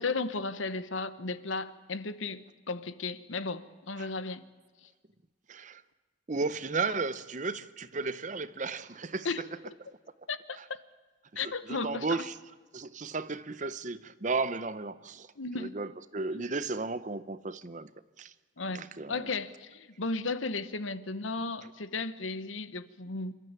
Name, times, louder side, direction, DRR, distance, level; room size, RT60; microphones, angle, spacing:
voice 1, 0.0-4.4 9.2-9.4 10.3-10.6 11.4-12.1 15.4-15.8 16.3-16.5 18.6-23.3, left 3 dB, 80° left, 1.1 m, -35 dB
voice 2, 5.5-5.8 6.3-9.4 10.6-10.7 11.3-12.3 12.7-15.3 15.6-17.9 18.2-18.3 18.7-19.3, right 3 dB, 40° right, 0.7 m, -34 dB
27.5 x 13.0 x 8.9 m
head